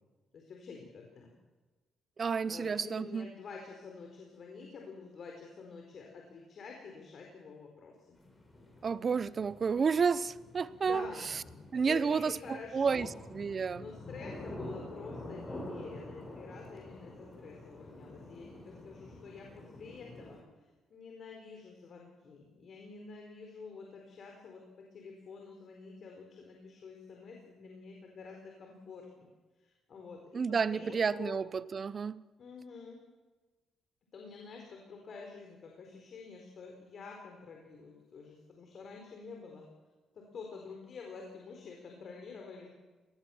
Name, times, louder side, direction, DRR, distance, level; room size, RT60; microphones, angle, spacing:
voice 1, 0.3-1.3 2.4-8.2 10.7-11.3 11.9-13.1 13.8-20.4 20.9-29.3 29.6-30.4 30.7-31.4 32.4-33.0 34.1-39.7 40.1-42.7, left 4 dB, 55° left, 1 dB, 4.5 m, -48 dB
voice 2, 2.2-3.3 8.8-11.4 11.7-13.9 30.3-32.2, right 5 dB, 40° right, 18 dB, 0.7 m, -31 dB
sound 1, 8.2-20.4, left 1 dB, 20° left, 7.3 m, -48 dB
23.5 x 20.0 x 7.2 m, 1.3 s
cardioid pair, 90°, 0 cm